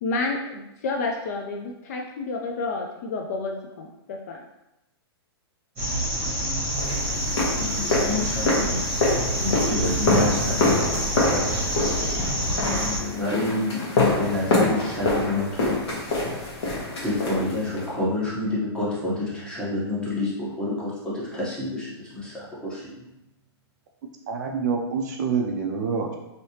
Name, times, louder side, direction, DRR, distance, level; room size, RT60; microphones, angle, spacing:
voice 1, 0.0-4.4, left 3 dB, 40° left, 1 dB, 0.3 m, -30 dB
sound 1, 5.8-13.0, equal, 15° right, 1.1 m, -27 dB
sound 2, 6.8-17.9, left 2 dB, 75° left, 1.3 m, -25 dB
voice 2, 7.5-8.8 9.3-11.3 12.7-15.8 16.1-16.5 17.0-23.1, left 2 dB, 5° left, -8 dB, 0.8 m, -29 dB
voice 3, 24.3-26.2, right 5 dB, 40° right, 2 dB, 0.4 m, -26 dB
3.2 x 2.8 x 2.8 m, 0.90 s
hypercardioid pair, 160°, 14 cm